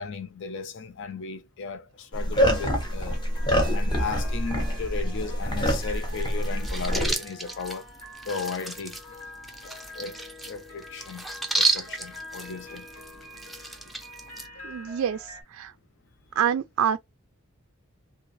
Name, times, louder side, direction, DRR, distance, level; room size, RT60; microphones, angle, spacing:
voice 1, 0.0-3.2 3.7-7.9 8.3-9.0 9.6-10.2 10.5-11.3 11.5-12.9 13.9-14.0, left 5 dB, 55° left, 0.5 m, -36 dB
sound 1, 2.1-7.1, equal, 20° left, 1.0 m, -26 dB
sound 2, 2.5-15.4, left 1 dB, 90° left, 1.8 m, -45 dB
sound 3, 5.7-14.5, right 3 dB, ahead, 0.5 m, -33 dB
voice 2, 14.6-15.7 16.4-17.0, right 8 dB, 80° right, 0.3 m, -26 dB
3.2 x 2.8 x 2.6 m
head